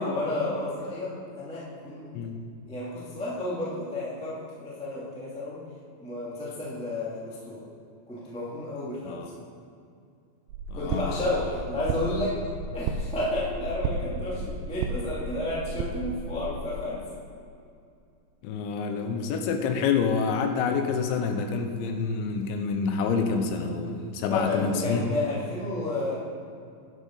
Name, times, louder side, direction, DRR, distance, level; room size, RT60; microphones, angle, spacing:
voice 1, 0.0-2.1 2.6-5.6 6.0-7.6 8.1-9.2 10.7-12.4 12.7-17.0 24.3-26.2, left 2 dB, 10° left, -8 dB, 0.4 m, -31 dB
sound 1, 10.5-16.7, right 3 dB, 85° right, 2.4 m, -33 dB
voice 2, 10.8-11.3 18.4-25.0, left 5 dB, 80° left, 6 dB, 3.0 m, -27 dB
11.0 x 10.5 x 3.9 m, 2.4 s
omnidirectional pair, 5.5 m